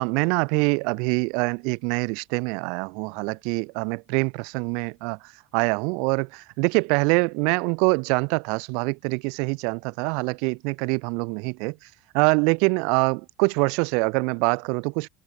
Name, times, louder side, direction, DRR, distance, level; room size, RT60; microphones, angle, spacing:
voice 1, 0.0-5.2 5.5-11.7 12.1-15.1, right 35 dB, 75° right, 1.4 m, -24 dB
open air
hypercardioid pair, 75°, 0 cm